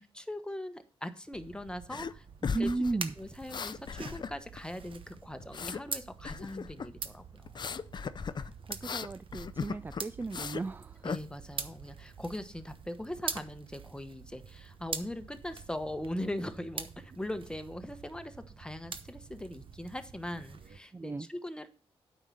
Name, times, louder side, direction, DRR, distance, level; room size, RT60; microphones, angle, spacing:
voice 1, 0.0-2.2 2.6-2.7 3.2-7.6 11.0-21.7, left 1 dB, 10° left, 9 dB, 1.2 m, -40 dB
sound 1, 1.3-20.8, right 5 dB, 55° right, 0.9 m, -45 dB
sound 2, 1.9-2.1 2.4-4.6 4.9-5.8 6.2-6.9 7.4-10.7 11.0-11.2, left 6 dB, 45° left, 0.5 m, -37 dB
voice 2, 2.5-3.1 8.7-11.0 20.9-21.3, right 3 dB, 20° right, 14 dB, 0.3 m, -35 dB
8.8 x 5.6 x 6.4 m, 0.39 s
cardioid pair, 70°, 10 cm